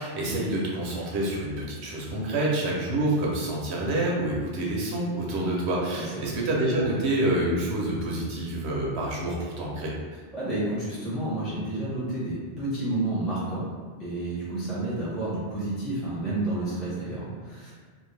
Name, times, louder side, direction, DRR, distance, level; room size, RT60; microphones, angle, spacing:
voice 1, 0.0-9.9, right 1 dB, 75° right, -3 dB, 0.9 m, -27 dB
voice 2, 5.9-6.3 10.3-13.7 14.0-17.7, right 2 dB, ahead, -11 dB, 0.6 m, -30 dB
2.6 x 2.4 x 3.2 m, 1.5 s
omnidirectional pair, 1.1 m